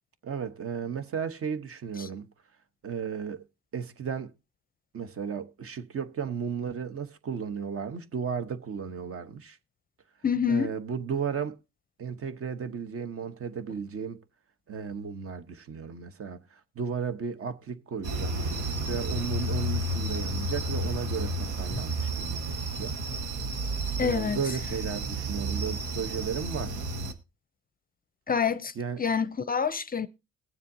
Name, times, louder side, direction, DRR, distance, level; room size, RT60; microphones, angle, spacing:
voice 1, 0.2-2.3 2.8-3.4 3.7-4.3 4.9-9.6 10.5-11.6 12.0-14.2 14.7-18.5 18.9-23.0 24.0-26.7 28.7-29.0, right 6 dB, 50° right, 1.0 m, -34 dB
voice 2, 10.2-10.7 24.0-24.4 28.3-28.7 29.0-30.1, left 7 dB, 30° left, 0.5 m, -27 dB
sound 1, 18.0-27.1, right 1 dB, 85° right, 1.4 m, -31 dB
21.0 x 7.3 x 2.7 m
cardioid pair, 90°, 30 cm